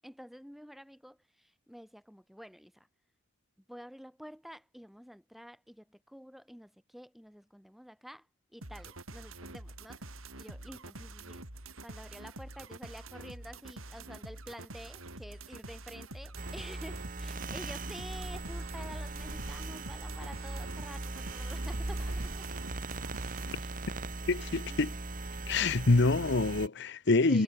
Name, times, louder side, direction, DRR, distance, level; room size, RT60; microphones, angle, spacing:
voice 1, 0.0-2.9 3.7-8.3 8.5-10.1 10.4-11.5 11.8-22.5 24.4-24.8 27.2-27.4, equal, ahead, 7.4 m, -49 dB
sound 1, 8.6-23.6, right 2 dB, 75° right, 5.7 m, -47 dB
sound 2, 16.4-26.7, right 2 dB, 40° right, 1.5 m, -39 dB
voice 2, 24.3-24.9 25.5-27.4, left 3 dB, 55° left, 0.9 m, -26 dB
head